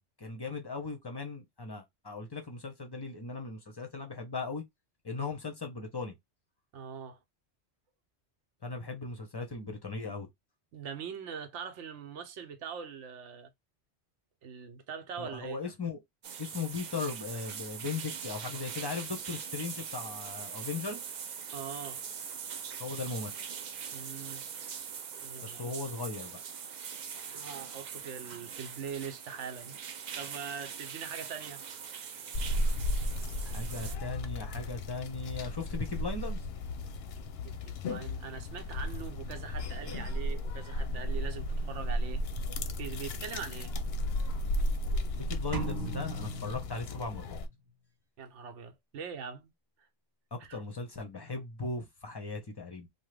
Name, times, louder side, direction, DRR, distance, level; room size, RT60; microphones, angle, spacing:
voice 1, 0.0-4.6 5.0-6.1 8.6-10.3 15.2-16.0 16.4-21.1 22.8-23.4 25.4-26.4 33.4-36.5 45.1-47.4 50.3-52.9, left 4 dB, 30° left, 0.5 m, -38 dB
voice 2, 6.7-7.2 10.7-13.5 14.4-15.6 21.5-22.0 23.9-24.4 25.2-25.7 27.3-29.8 30.2-31.6 32.0-32.1 37.4-42.2 42.8-43.7 48.2-49.5 50.4-50.6, right 6 dB, 80° right, 1.0 m, -42 dB
sound 1, 16.2-34.0, right 7 dB, 60° right, 0.5 m, -42 dB
sound 2, 32.3-47.5, left 1 dB, 65° left, 0.7 m, -34 dB
sound 3, 45.5-47.5, right 2 dB, 20° right, 0.8 m, -38 dB
2.9 x 2.2 x 3.2 m
omnidirectional pair, 1.2 m